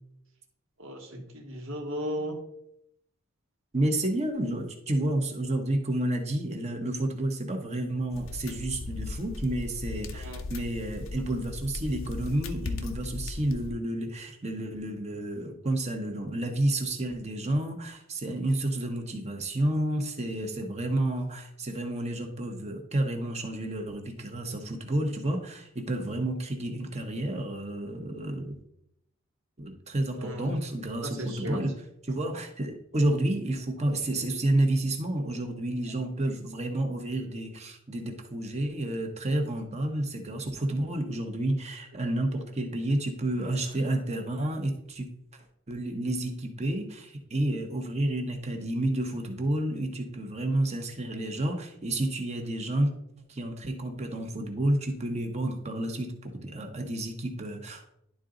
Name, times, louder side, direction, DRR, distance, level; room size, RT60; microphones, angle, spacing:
voice 1, 0.8-2.4 10.1-10.4 30.2-30.6 31.0-31.6, equal, 75° right, 2 dB, 1.5 m, -35 dB
voice 2, 3.7-28.5 29.6-31.7 32.0-45.1 45.7-52.9 53.3-57.9, right 1 dB, 35° right, 4 dB, 1.0 m, -30 dB
sound 1, 8.1-13.7, left 3 dB, 75° left, 0.7 m, -37 dB
11.0 x 3.9 x 3.8 m, 0.75 s
head